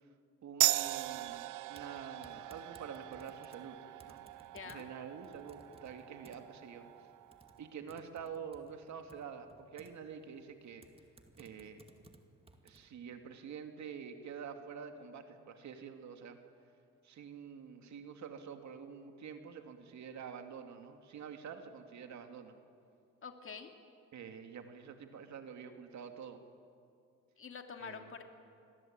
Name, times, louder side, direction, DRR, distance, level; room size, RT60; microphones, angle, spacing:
voice 1, 0.4-3.8 4.0-6.8 7.6-10.8 11.4-11.8 12.6-16.4 17.0-22.6 24.1-26.4 27.8-28.1, right 7 dB, 65° right, 6 dB, 2.4 m, -47 dB
sound 1, 0.6-7.7, right 16 dB, 90° right, 0.8 m, -38 dB
Typing, 1.7-12.9, right 2 dB, 20° right, 2.4 m, -62 dB
voice 2, 4.5-4.9 23.2-23.7 27.4-28.2, left 6 dB, 45° left, 5 dB, 2.5 m, -46 dB
27.5 x 21.0 x 8.9 m, 2.4 s
cardioid pair, 90°, 30 cm